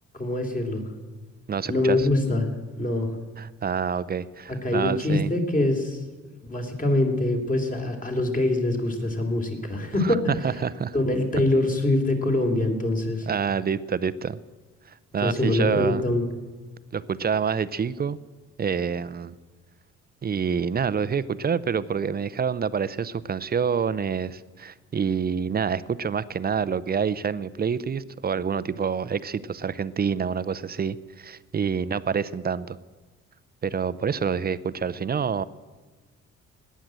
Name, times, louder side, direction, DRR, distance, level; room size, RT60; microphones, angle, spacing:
voice 1, 0.1-0.8 1.7-3.1 4.6-6.0 6.4-10.2 10.9-13.3 15.2-16.3, left 2 dB, 25° left, 4 dB, 3.1 m, -24 dB
voice 2, 1.5-2.1 3.4-5.3 10.0-10.2 10.4-10.9 13.3-14.4 14.9-16.0 16.9-18.2 18.6-19.4 20.2-32.8 33.6-35.4, right 6 dB, 30° right, 17 dB, 0.6 m, -27 dB
17.0 x 10.5 x 7.7 m, 1.3 s
cardioid pair, 90°, 30 cm